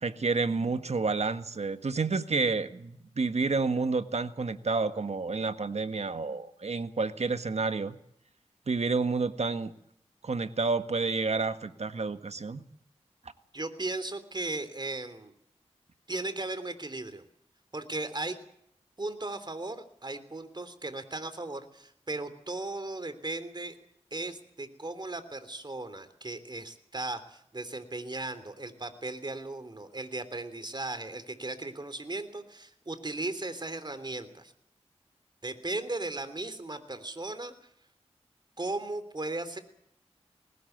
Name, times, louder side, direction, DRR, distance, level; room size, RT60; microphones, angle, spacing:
voice 1, 0.0-7.9 8.7-9.7 10.2-12.6, right 4 dB, 70° right, 10 dB, 1.6 m, -29 dB
voice 2, 13.5-15.3 16.1-17.2 17.7-18.4 19.0-23.7 24.1-34.5 35.4-37.5 38.6-39.6, right 2 dB, 40° right, 11 dB, 3.2 m, -36 dB
20.5 x 18.5 x 8.0 m, 0.72 s
cardioid pair, 45°, 12 cm